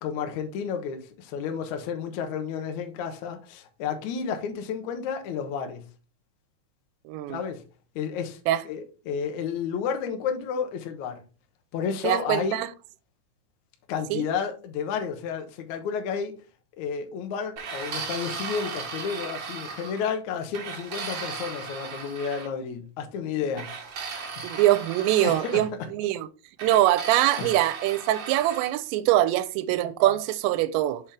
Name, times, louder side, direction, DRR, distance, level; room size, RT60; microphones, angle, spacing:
voice 1, 0.0-5.8 7.3-7.6 7.9-8.4 8.6-11.2 11.7-12.6 13.9-16.3 16.8-23.7 24.1-24.5 25.2-25.6 27.4-27.5, left 6 dB, 90° left, 1.6 m, -31 dB
voice 2, 7.1-7.4 8.5-8.6 12.0-12.7 14.1-14.3 24.4-26.3 26.6-31.0, right 14 dB, 85° right, 2.8 m, -23 dB
sound 1, 17.6-20.1 20.5-22.5 23.6-25.6 26.6-28.7, right 5 dB, 60° right, 1.6 m, -36 dB
6.6 x 5.7 x 3.3 m
omnidirectional pair, 5.0 m